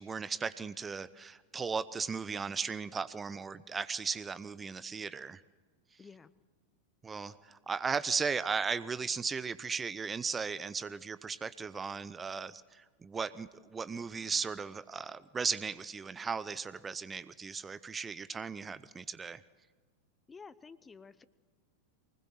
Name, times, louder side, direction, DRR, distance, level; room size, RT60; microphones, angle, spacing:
voice 1, 0.0-5.4 7.0-19.4, right 5 dB, 15° right, 15 dB, 0.6 m, -36 dB
voice 2, 6.0-6.3 20.3-21.3, left 5 dB, 15° left, 17 dB, 0.8 m, -51 dB
24.0 x 20.0 x 7.7 m, 1.4 s
figure-of-eight pair, 90°, 0 cm